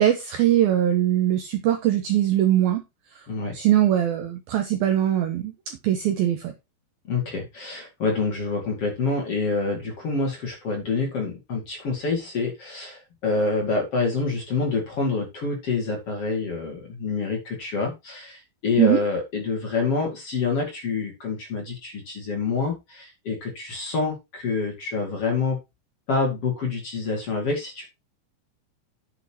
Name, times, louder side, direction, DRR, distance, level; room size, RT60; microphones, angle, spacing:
voice 1, 0.0-2.8 3.5-5.5 5.8-6.5 18.8-19.0, right 12 dB, 75° right, 2.2 m, -21 dB
voice 2, 7.1-25.6 26.1-27.9, left 4 dB, 40° left, 2.7 m, -27 dB
9.6 x 8.1 x 3.0 m
omnidirectional pair, 5.4 m